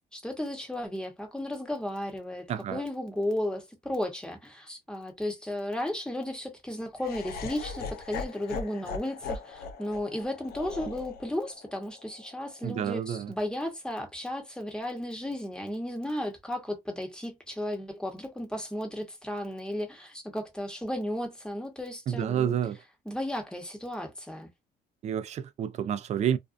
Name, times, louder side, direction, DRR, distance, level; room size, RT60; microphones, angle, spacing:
voice 1, 0.1-22.6 23.1-24.5, left 1 dB, 5° left, 0.8 m, -34 dB
voice 2, 2.5-2.8 12.6-13.3 22.1-22.8 25.0-26.4, right 9 dB, 40° right, 0.4 m, -29 dB
Laughter, 7.0-13.1, left 5 dB, 65° left, 0.5 m, -40 dB
2.5 x 2.2 x 2.4 m
cardioid pair, 110°, 17 cm